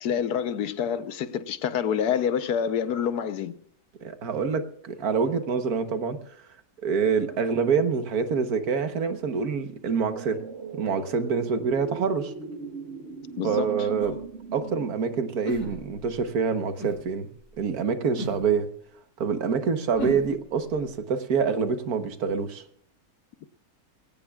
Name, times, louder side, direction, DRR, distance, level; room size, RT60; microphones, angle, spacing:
voice 1, 0.0-3.5 13.4-13.7, left 8 dB, 85° left, 1.4 m, -27 dB
voice 2, 4.0-6.4 6.8-10.4 10.7-12.3 13.4-14.2 14.5-17.3 17.6-18.7 19.2-22.6, right 5 dB, 75° right, 1.6 m, -26 dB
sound 1, 10.1-16.2 16.6-16.7, right 4 dB, 50° right, 1.4 m, -39 dB
sound 2, 14.0-14.2 15.4-16.1 16.8-17.0 18.2-18.4 19.9-20.3, equal, 70° left, 7.5 m, -33 dB
21.0 x 17.5 x 2.4 m
omnidirectional pair, 1.6 m